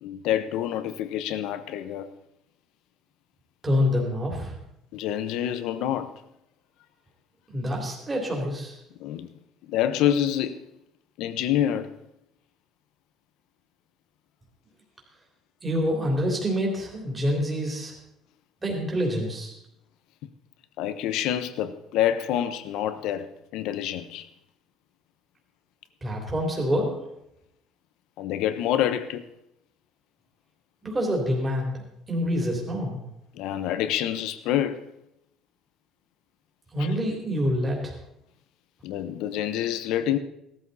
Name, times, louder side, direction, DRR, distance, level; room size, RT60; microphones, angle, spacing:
voice 1, 0.0-2.1 4.9-6.1 9.0-9.3 9.6-10.6 11.2-12.0 20.8-23.3 23.5-24.3 28.2-29.2 33.3-34.8 36.8-36.9 38.8-40.2, left 11 dB, 70° left, 1.1 m, -27 dB
voice 2, 3.6-4.6 7.5-8.8 15.6-17.9 18.6-19.5 26.0-27.0 30.8-31.7 32.1-33.0 36.7-37.9, equal, 15° right, 3.3 m, -26 dB
17.5 x 13.0 x 4.1 m
cardioid pair, 175°, 0 cm